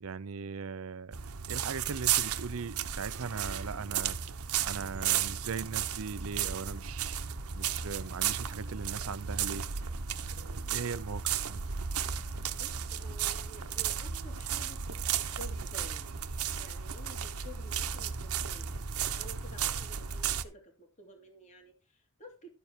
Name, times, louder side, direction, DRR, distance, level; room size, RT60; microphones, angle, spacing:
voice 1, 0.0-1.2 1.5-4.2 4.6-7.2 7.5-9.7 10.4-11.6, right 5 dB, 70° right, 0.6 m, -39 dB
sound 1, 1.1-20.4, right 8 dB, 90° right, 1.0 m, -34 dB
voice 2, 12.5-22.5, equal, 35° left, 2.3 m, -52 dB
13.0 x 7.2 x 4.5 m
head